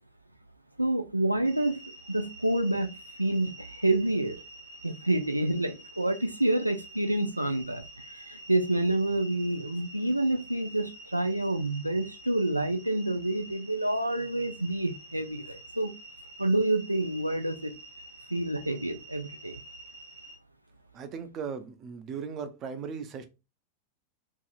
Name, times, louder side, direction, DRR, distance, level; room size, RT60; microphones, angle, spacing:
voice 1, 0.8-1.8 2.1-4.4 4.8-15.9 16.4-17.7 18.3-19.6, right 1 dB, 85° right, 0.3 m, -28 dB
sound 1, 1.4-20.4, right 1 dB, 65° right, 0.9 m, -48 dB
voice 2, 20.9-23.2, right 6 dB, 30° right, 0.5 m, -37 dB
2.7 x 2.7 x 2.3 m
figure-of-eight pair, 90°, 0 cm